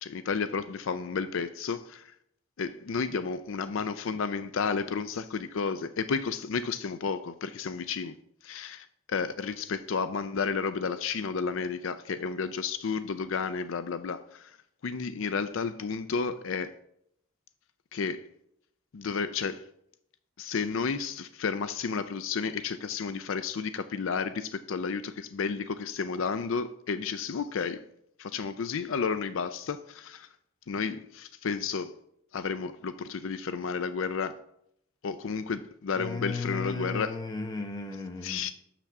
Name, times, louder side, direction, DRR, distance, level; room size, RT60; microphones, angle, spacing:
voice 1, 0.0-2.1 2.6-8.1 8.4-14.6 14.8-16.7 17.9-18.3 18.9-19.6 20.4-27.8 28.2-30.3 30.7-31.9 32.3-34.4 35.0-37.2 38.2-38.5, left 5 dB, 65° left, 0.4 m, -32 dB
voice 2, 35.9-38.4, left 3 dB, 20° left, 0.8 m, -35 dB
6.7 x 5.9 x 5.9 m
head